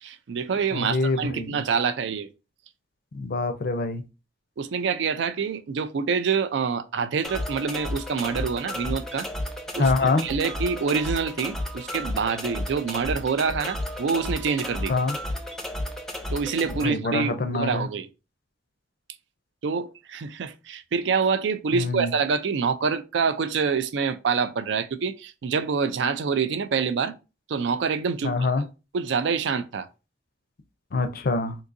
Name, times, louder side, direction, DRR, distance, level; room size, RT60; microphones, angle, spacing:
voice 1, 0.0-2.3 4.6-9.3 9.8-14.9 16.3-18.1 19.6-27.2 27.5-28.6 28.9-29.9, right 5 dB, 70° right, 0.4 m, -26 dB
voice 2, 0.7-1.6 3.1-4.0 9.8-10.2 14.9-15.2 16.8-17.9 21.7-22.1 28.2-28.6 30.9-31.6, left 3 dB, 55° left, 0.5 m, -25 dB
sound 1, 7.2-16.8, left 1 dB, ahead, 0.5 m, -33 dB
3.8 x 2.6 x 2.5 m
head